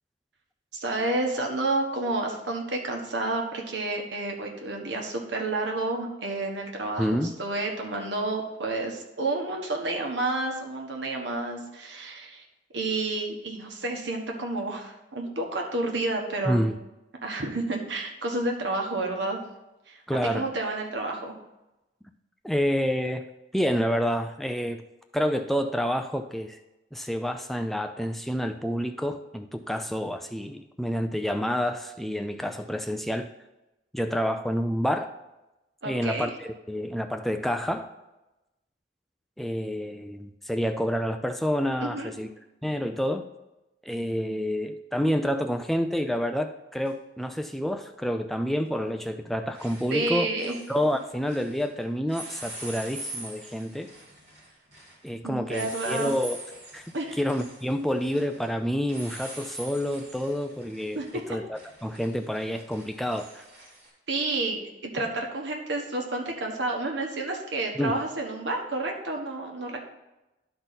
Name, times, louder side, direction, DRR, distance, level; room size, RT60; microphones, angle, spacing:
voice 1, 0.7-12.4 12.7-16.6 17.2-19.4 19.9-20.0 20.3-21.3 35.8-36.3 41.8-42.1 49.9-50.5 55.2-56.1 56.9-57.2 60.9-61.2 64.1-69.8, right 2 dB, 85° right, 1 dB, 1.4 m, -30 dB
voice 2, 7.0-7.3 16.5-16.8 20.1-20.5 22.4-23.2 23.5-24.8 25.1-26.6 26.9-33.3 33.9-35.1 35.9-37.9 39.4-42.3 42.6-43.2 43.9-50.3 50.7-53.9 55.0-56.4 56.7-63.4 67.8-68.0, equal, ahead, 6 dB, 0.3 m, -28 dB
sound 1, 46.9-47.0 48.7-49.0 49.3-51.7 52.1-63.9, right 1 dB, 35° right, 2.8 m, -44 dB
12.0 x 4.0 x 4.1 m, 0.98 s
head